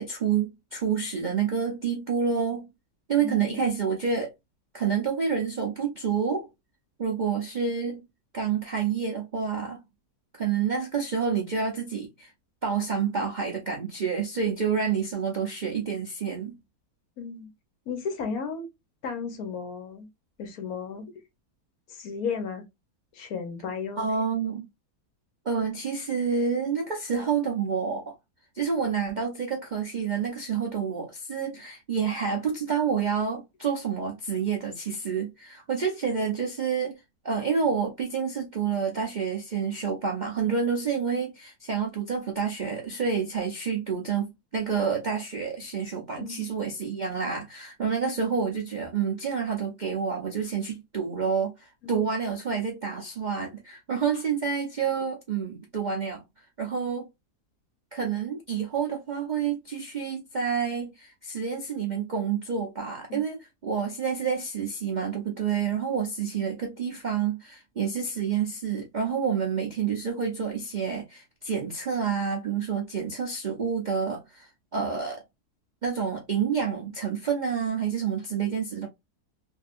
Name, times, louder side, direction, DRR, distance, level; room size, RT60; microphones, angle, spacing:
voice 1, 0.0-2.7 3.1-4.3 4.7-6.5 7.0-8.0 8.3-9.8 10.3-12.3 12.6-16.6 24.0-24.7 25.4-28.2 28.5-44.3 44.5-56.2 56.6-57.1 57.9-75.2 75.8-78.9, right 6 dB, 55° right, 0.5 m, -28 dB
voice 2, 3.2-3.6 14.4-14.5 17.2-17.5 17.9-18.7 19.0-20.1 20.4-21.1 22.0-22.6 23.2-24.0 46.2-46.5 51.8-51.9 63.1-63.2, left 5 dB, 70° left, 1.2 m, -34 dB
3.2 x 2.6 x 2.4 m
omnidirectional pair, 1.7 m